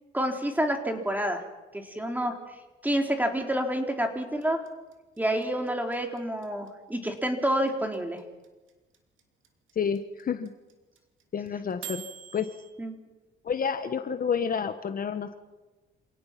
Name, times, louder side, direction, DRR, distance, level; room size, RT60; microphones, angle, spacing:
voice 1, 0.1-1.4 1.7-2.4 2.8-4.6 5.2-8.2 12.8-13.0, right 1 dB, 10° right, 3 dB, 3.6 m, -28 dB
sound 1, 4.4-12.7, right 10 dB, 75° right, 2.9 m, -44 dB
voice 2, 9.7-10.5 11.3-12.0 12.3-12.5 13.4-15.4, left 6 dB, 45° left, 9 dB, 1.3 m, -29 dB
27.0 x 17.5 x 6.0 m, 1.2 s
cardioid pair, 90°, 20 cm